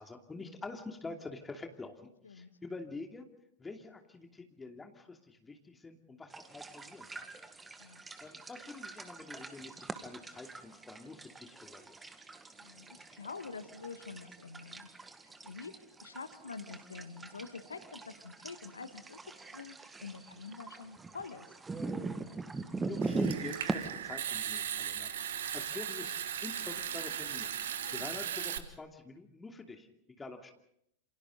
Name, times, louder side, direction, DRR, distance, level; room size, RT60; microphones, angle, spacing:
voice 1, 0.0-2.0 2.3-3.3 3.6-7.4 8.2-12.1 22.8-30.5, left 3 dB, 10° left, 4 dB, 2.7 m, -47 dB
sound 1, 6.3-23.8, right 3 dB, 10° right, 1.8 m, -42 dB
voice 2, 12.6-14.9 15.2-15.7 16.0-19.2 19.5-21.5 27.9-28.1, left 4 dB, 75° left, 11 dB, 1.4 m, -46 dB
Water tap faucet / Sink (filling or washing) / Trickle dribble, 23.0-28.6, right 9 dB, 60° right, 1.5 m, -37 dB
28.5 x 27.0 x 4.0 m, 0.74 s
figure-of-eight pair, 90°, 0 cm